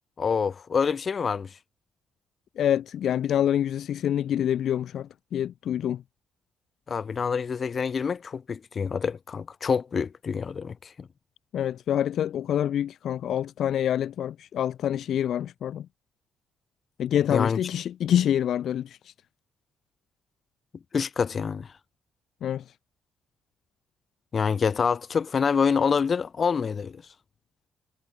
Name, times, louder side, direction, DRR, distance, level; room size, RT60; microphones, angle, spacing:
voice 1, 0.2-1.5 6.9-11.1 17.3-17.6 20.9-21.7 24.3-27.0, left 6 dB, 45° left, 3.5 m, -26 dB
voice 2, 2.6-6.0 11.5-15.9 17.0-19.1 22.4-22.7, left 10 dB, 70° left, 1.1 m, -26 dB
cardioid pair, 90°, 0 cm